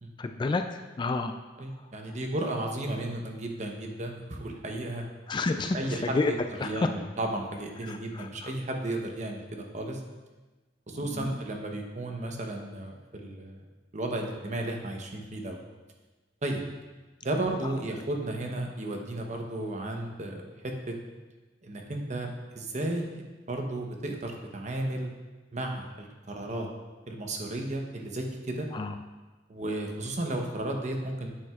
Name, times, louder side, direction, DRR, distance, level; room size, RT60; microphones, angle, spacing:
voice 1, 0.2-0.6 1.0-1.3 5.3-5.8 6.1-6.3 6.6-6.7 7.9-8.3 11.1-11.4 28.7-29.0, left 3 dB, 25° left, 7 dB, 0.3 m, -29 dB
voice 2, 1.6-5.0 5.7-6.4 6.6-10.0 10.9-13.6 13.9-15.6 16.4-16.6 17.2-21.0 21.6-22.3 22.5-25.1 25.5-26.7 27.1-28.7 29.5-31.3, right 1 dB, 40° right, 2 dB, 0.9 m, -34 dB
8.7 x 7.4 x 2.4 m, 1.2 s
head